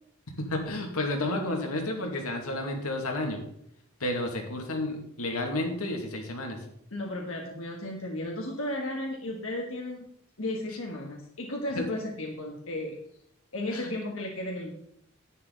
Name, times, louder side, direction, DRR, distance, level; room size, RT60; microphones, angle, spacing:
voice 1, 0.4-3.4 4.0-6.6 11.7-11.9 13.7-13.9, left 1 dB, 85° left, 2 dB, 2.3 m, -31 dB
voice 2, 6.9-10.0 10.4-12.9 13.5-14.7, left 1 dB, 65° left, 0 dB, 1.6 m, -34 dB
11.0 x 9.6 x 4.0 m, 0.72 s
head